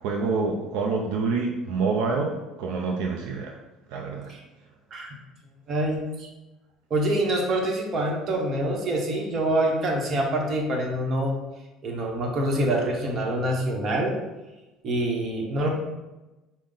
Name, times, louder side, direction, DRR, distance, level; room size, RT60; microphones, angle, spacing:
voice 1, 0.0-3.6 3.9-4.3, right 4 dB, 80° right, 1 dB, 0.4 m, -27 dB
voice 2, 5.7-6.3 6.9-11.3 11.8-14.1 14.8-15.7, right 1 dB, 40° right, 0 dB, 0.9 m, -25 dB
5.2 x 2.0 x 3.7 m, 1.1 s
cardioid pair, 110°, 0 cm